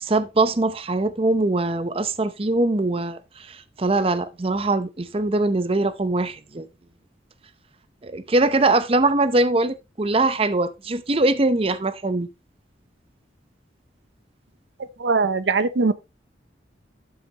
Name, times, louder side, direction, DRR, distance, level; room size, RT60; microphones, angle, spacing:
voice 1, 0.0-6.7 8.0-12.3, right 2 dB, 30° right, 0.6 m, -22 dB
voice 2, 15.0-15.9, right 4 dB, 75° right, 0.6 m, -20 dB
12.0 x 6.1 x 2.8 m
head